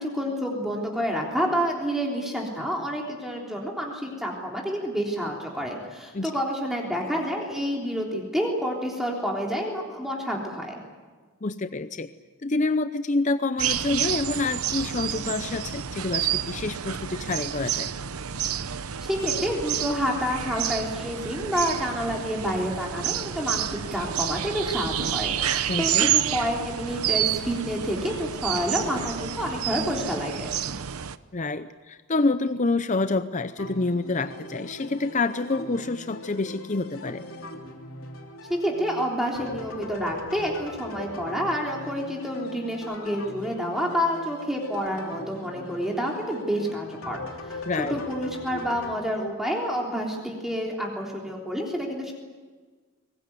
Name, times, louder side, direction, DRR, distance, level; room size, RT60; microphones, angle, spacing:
voice 1, 0.0-10.7 19.1-30.5 38.5-47.2 47.5-52.1, equal, ahead, -1 dB, 3.4 m, -29 dB
voice 2, 11.4-12.1 12.4-17.9 25.7-26.1 31.3-37.2 47.7-48.0, left 3 dB, 35° left, 11 dB, 0.6 m, -27 dB
sound 1, 13.6-31.2, right 10 dB, 85° right, 0.8 m, -29 dB
sound 2, 33.6-48.9, left 2 dB, 75° left, 2.9 m, -40 dB
23.0 x 20.0 x 9.6 m, 1.4 s
head